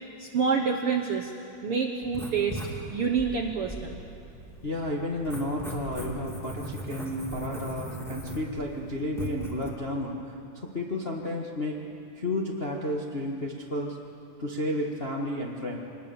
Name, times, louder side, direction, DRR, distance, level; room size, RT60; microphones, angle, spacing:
voice 1, 0.2-1.3 1.6-2.6 2.9-4.0, right 5 dB, 65° right, 2 dB, 1.4 m, -27 dB
Writing, 2.0-9.7, right 1 dB, ahead, 2.3 m, -39 dB
voice 2, 4.6-10.3 10.6-11.8 12.1-14.0 14.4-15.8, left 1 dB, 35° left, -1 dB, 0.9 m, -32 dB
25.0 x 20.0 x 7.0 m, 2.6 s
omnidirectional pair, 3.8 m